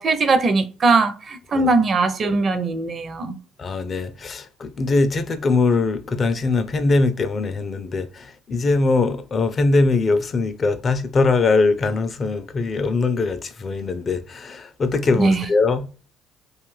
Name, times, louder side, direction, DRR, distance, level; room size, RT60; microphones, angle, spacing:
voice 1, 0.0-3.4 15.2-15.4, right 3 dB, 40° right, 0.5 m, -20 dB
voice 2, 3.6-15.9, left 3 dB, 40° left, 0.4 m, -21 dB
2.5 x 2.3 x 3.1 m
supercardioid pair, 90°, 0 cm